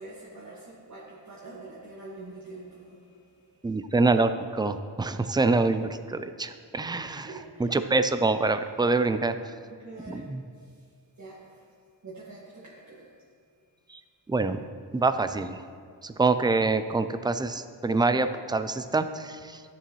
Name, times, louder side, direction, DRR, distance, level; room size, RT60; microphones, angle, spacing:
voice 1, 0.0-3.7 7.2-7.8 9.7-10.9 11.2-11.7 12.0-13.4, right 2 dB, 40° right, -7 dB, 1.7 m, -46 dB
voice 2, 3.6-7.3 7.6-9.3 10.1-10.4 13.9-14.0 14.3-14.6 14.9-15.6 16.0-19.6, right 3 dB, 10° right, 10 dB, 0.3 m, -25 dB
13.5 x 6.9 x 3.1 m, 2.2 s
cardioid pair, 100°, 44 cm